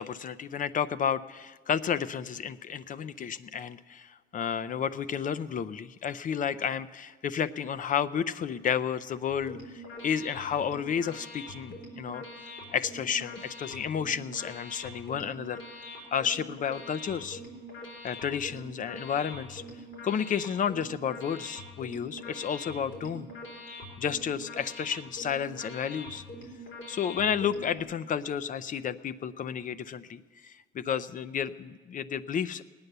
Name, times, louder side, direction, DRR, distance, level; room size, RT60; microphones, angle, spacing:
voice 1, 0.0-12.2 12.7-15.6 16.1-17.4 18.0-19.6 20.0-23.3 24.0-26.2 26.9-32.6, left 8 dB, 45° left, 15 dB, 0.5 m, -31 dB
sound 1, 9.3-27.8, left 1 dB, 80° left, 4.0 m, -44 dB
18.5 x 9.6 x 6.7 m, 1.4 s
cardioid pair, 130°, 20 cm